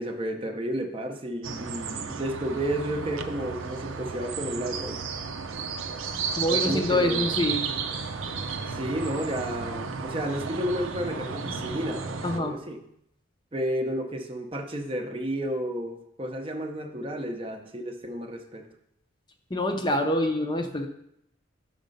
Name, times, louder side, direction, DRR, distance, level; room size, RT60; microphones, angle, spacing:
voice 1, 0.0-5.0 6.5-7.3 8.6-12.8 13.5-18.7, right 1 dB, 25° right, 4 dB, 0.6 m, -32 dB
sound 1, 1.4-12.4, right 5 dB, 90° right, 0.6 m, -33 dB
voice 2, 6.3-7.6 12.2-12.6 19.5-20.9, left 1 dB, 20° left, 4 dB, 0.6 m, -26 dB
6.5 x 5.3 x 5.2 m, 0.76 s
head